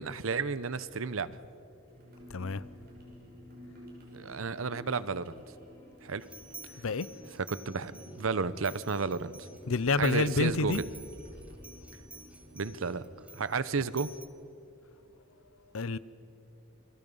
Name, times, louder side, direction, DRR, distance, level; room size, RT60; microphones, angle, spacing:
voice 1, 0.0-1.4 4.1-5.4 6.0-6.3 7.5-9.5 10.0-10.9 12.5-13.0 13.3-14.1, right 4 dB, 80° right, 0.8 m, -32 dB
sound 1, 1.3-14.7, equal, 15° left, 3.1 m, -56 dB
sound 2, 1.9-13.0, left 1 dB, 50° right, 5.9 m, -54 dB
voice 2, 2.3-2.6 6.8-7.1 9.7-10.8 15.7-16.0, left 3 dB, 85° left, 0.7 m, -28 dB
sound 3, 6.2-8.2 8.6-14.3, right 2 dB, 5° right, 1.3 m, -51 dB
28.5 x 22.5 x 5.5 m
head